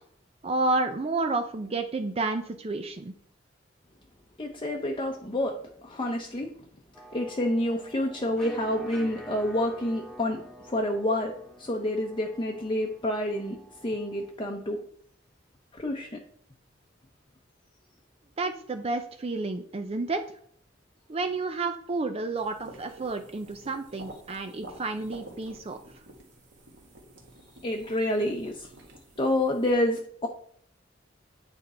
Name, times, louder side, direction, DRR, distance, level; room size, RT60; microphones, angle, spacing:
voice 1, 0.4-3.1 18.4-20.2 21.1-25.8, right 3 dB, 30° right, 0.5 m, -30 dB
voice 2, 4.4-6.5 7.1-14.8 15.7-16.2 27.6-28.7 29.2-30.3, left 1 dB, 25° left, 0.8 m, -28 dB
sound 1, 6.9-14.3, equal, 5° left, 1.0 m, -48 dB
sound 2, 22.3-29.7, right 1 dB, 70° right, 1.8 m, -49 dB
9.1 x 5.2 x 4.3 m
head